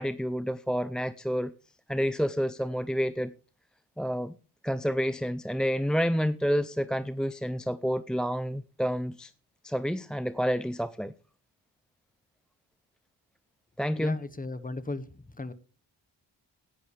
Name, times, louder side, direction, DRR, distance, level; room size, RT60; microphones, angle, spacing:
voice 1, 0.0-1.5 1.9-3.3 4.0-4.3 4.6-9.3 9.6-11.1 13.8-14.2, equal, ahead, 0.5 m, -29 dB
voice 2, 14.0-15.1 15.3-15.5, left 2 dB, 20° left, 1.2 m, -36 dB
17.0 x 10.5 x 3.3 m
cardioid pair, 65°, 44 cm